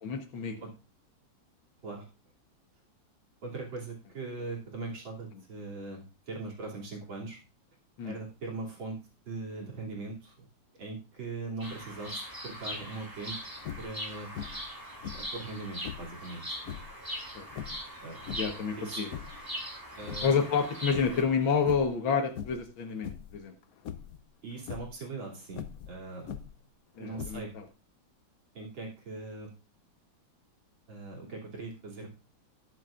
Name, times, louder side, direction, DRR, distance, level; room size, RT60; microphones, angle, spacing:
voice 1, 0.0-0.6 8.0-8.2 17.4-17.5 18.3-19.1 20.2-23.6 27.0-27.6, left 6 dB, 85° left, 4 dB, 2.1 m, -29 dB
voice 2, 3.4-7.4 8.0-9.0 9.3-10.5 10.8-13.4 13.8-14.3 15.1-16.4 18.0-18.2 18.8-19.0 20.0-20.3 24.4-26.3 27.0-27.6 28.5-29.5 30.9-32.1, right 3 dB, 90° right, -2 dB, 3.8 m, -40 dB
Bird vocalization bird call bird song, 11.6-21.2, equal, 10° right, 2.7 m, -41 dB
sound 1, 13.6-14.0 14.4-14.7 15.0-16.2 16.6-17.0 17.5-18.6 19.0-19.5 19.9-20.6 20.9-21.3 21.6-22.0 22.4-22.7 23.0-23.4 23.8-24.2 24.6-24.9 25.5-26.7 27.1-27.7, left 9 dB, 65° left, 0.9 m, -41 dB
19.0 x 7.5 x 2.5 m, 0.32 s
omnidirectional pair, 2.1 m